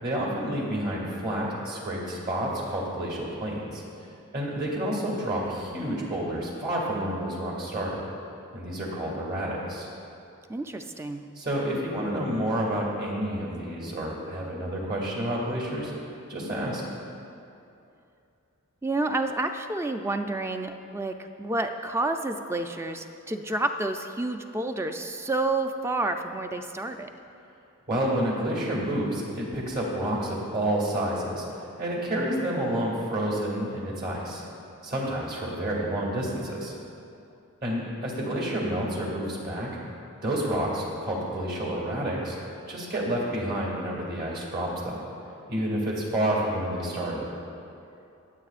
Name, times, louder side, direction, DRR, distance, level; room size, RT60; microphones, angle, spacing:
voice 1, 0.0-3.8 4.3-8.0 8.5-9.9 11.4-15.9 16.3-16.8 27.9-31.5 31.8-34.4 34.8-36.7 37.6-39.7 40.2-45.0 45.5-47.2, right 1 dB, 45° right, -3 dB, 2.3 m, -29 dB
voice 2, 10.5-11.2 18.8-27.1, right 2 dB, 10° right, 6 dB, 0.4 m, -29 dB
22.5 x 7.9 x 2.5 m, 2.7 s
head